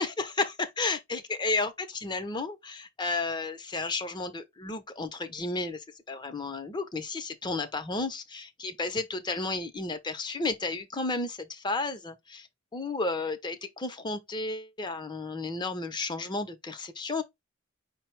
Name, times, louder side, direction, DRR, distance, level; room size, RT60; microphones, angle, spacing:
voice 1, 0.0-12.5 12.7-17.2, left 3 dB, 20° left, 0.5 m, -32 dB
5.2 x 2.0 x 4.3 m
head